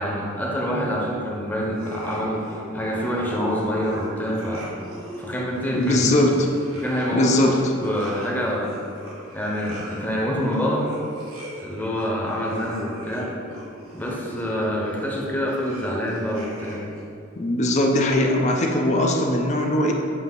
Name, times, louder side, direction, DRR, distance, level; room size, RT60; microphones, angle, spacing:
voice 1, 0.0-4.7 5.2-6.1 6.7-8.8 9.3-10.9 11.6-13.4 13.9-16.9, equal, 10° left, -4 dB, 0.9 m, -26 dB
sound 1, 1.7-17.0, right 1 dB, 85° right, 1.3 m, -40 dB
voice 2, 5.7-6.3 7.1-7.6 17.4-19.9, left 1 dB, 35° left, 1 dB, 0.5 m, -20 dB
8.1 x 2.8 x 5.4 m, 2.5 s
head